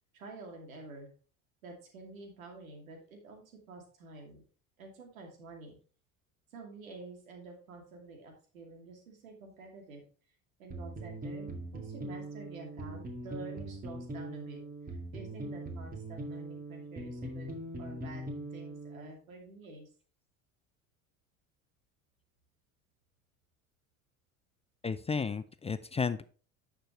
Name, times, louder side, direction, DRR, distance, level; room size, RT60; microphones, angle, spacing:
voice 1, 0.1-1.1 1.6-4.4 4.8-5.8 6.5-10.0 10.6-14.6 14.9-17.5 17.8-18.2 18.5-19.9, right 3 dB, 85° right, 2 dB, 2.5 m, -49 dB
sound 1, 10.7-19.1, right 1 dB, 20° right, 2.0 m, -41 dB
voice 2, 24.8-26.2, left 5 dB, 15° left, 13 dB, 0.5 m, -33 dB
10.0 x 6.6 x 3.0 m, 0.40 s
hypercardioid pair, 70°, 40 cm